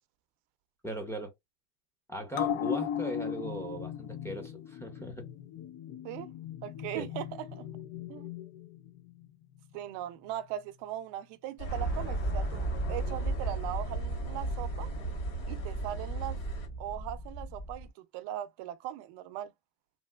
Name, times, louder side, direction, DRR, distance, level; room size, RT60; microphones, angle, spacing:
voice 1, 0.8-1.3 2.1-5.2 6.9-7.1, equal, 5° left, 0.6 m, -38 dB
sound 1, 2.3-9.3 9.6-9.7, left 9 dB, 60° left, 0.7 m, -37 dB
voice 2, 6.6-7.7 8.1-8.3 9.7-14.9 15.5-16.4 16.8-19.5, right 12 dB, 70° right, 0.6 m, -39 dB
sound 2, 11.6-16.7, right 3 dB, 85° left, 2.2 m, -37 dB
sound 3, 11.7-17.9, right 1 dB, 25° left, 1.2 m, -36 dB
3.3 x 2.5 x 2.3 m
cardioid pair, 155°, 43 cm